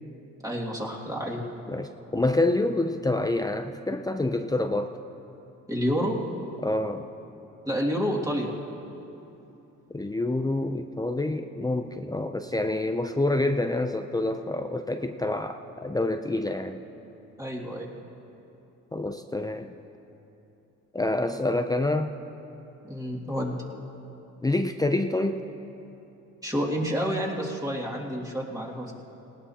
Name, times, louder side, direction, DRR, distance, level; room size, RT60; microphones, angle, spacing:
voice 1, 0.4-1.4 5.7-6.2 7.6-8.6 17.4-17.9 22.8-23.6 26.4-28.9, equal, 10° right, -4 dB, 2.2 m, -29 dB
voice 2, 1.7-5.0 6.6-7.1 9.9-16.8 18.9-19.8 20.9-22.2 24.4-25.5, left 2 dB, 15° left, 6 dB, 0.5 m, -27 dB
19.0 x 18.5 x 2.8 m, 2.9 s
cardioid pair, 90°, 30 cm